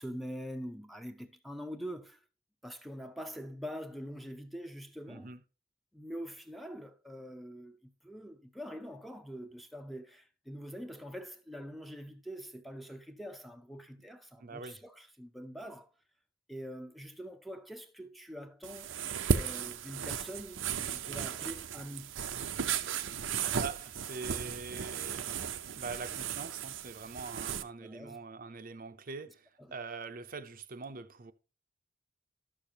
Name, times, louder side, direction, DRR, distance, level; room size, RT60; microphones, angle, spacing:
voice 1, 0.0-2.2 2.6-5.3 5.9-15.9 16.5-18.9 19.3-22.2 27.8-28.2 29.6-29.7, equal, ahead, 0.6 m, -44 dB
voice 2, 5.1-5.4 14.4-14.8 23.5-25.4 25.8-31.3, right 4 dB, 45° right, 0.6 m, -43 dB
sound 1, 18.6-27.6, right 7 dB, 90° right, 0.6 m, -35 dB
12.0 x 6.6 x 2.8 m
head